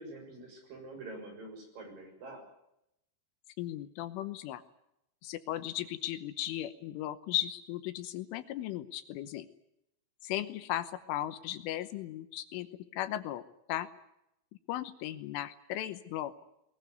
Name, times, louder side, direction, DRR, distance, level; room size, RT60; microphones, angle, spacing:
voice 1, 0.0-2.4, right 2 dB, 45° right, 4 dB, 8.1 m, -46 dB
voice 2, 3.6-4.6 5.2-9.5 10.2-12.7 12.9-13.4 13.7-13.9 14.7-16.5, left 13 dB, 80° left, 11 dB, 3.4 m, -36 dB
21.0 x 20.5 x 9.5 m, 0.83 s
omnidirectional pair, 5.8 m